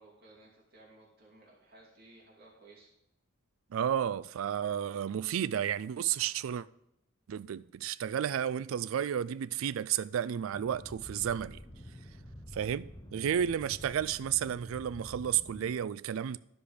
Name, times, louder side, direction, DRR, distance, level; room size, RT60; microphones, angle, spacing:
voice 1, 0.0-2.9, right 2 dB, 50° right, 2.6 m, -57 dB
voice 2, 3.7-6.7 7.3-11.6 12.5-16.4, right 9 dB, 80° right, 0.3 m, -32 dB
sound 1, 10.5-15.7, equal, 20° left, 1.0 m, -48 dB
12.5 x 5.0 x 5.1 m
head